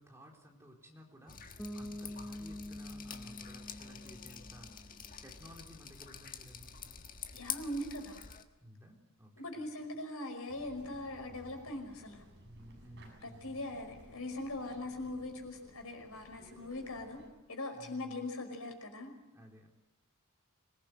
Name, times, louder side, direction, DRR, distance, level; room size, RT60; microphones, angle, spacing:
voice 1, 0.0-7.0 8.6-10.0 12.4-13.8 17.7-18.3 19.3-19.7, equal, 15° right, 0 dB, 4.2 m, -56 dB
Drip, 1.3-8.4, left 7 dB, 40° left, 1.5 m, -47 dB
Bass guitar, 1.6-5.3, left 1 dB, 5° left, 1.6 m, -46 dB
voice 2, 7.3-8.2 9.4-12.2 13.2-17.2 17.5-19.1, left 1 dB, 85° left, 4 dB, 5.3 m, -41 dB
sound 1, 10.5-17.3, right 1 dB, 55° right, 7.2 m, -58 dB
26.0 x 18.5 x 7.9 m, 0.97 s
head